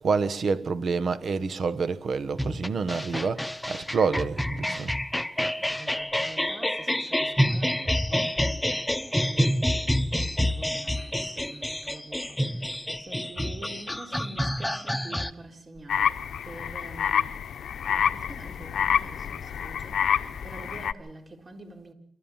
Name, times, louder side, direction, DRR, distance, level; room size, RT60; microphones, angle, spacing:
voice 1, 0.0-4.9, right 5 dB, 60° right, 1.4 m, -28 dB
sound 1, 2.4-15.3, equal, 5° left, 1.1 m, -28 dB
voice 2, 5.5-17.5 17.8-21.9, right 2 dB, 40° right, 4.0 m, -46 dB
sound 2, 15.9-20.9, left 8 dB, 75° left, 0.9 m, -28 dB
28.0 x 14.0 x 7.3 m
cardioid pair, 75°, 0 cm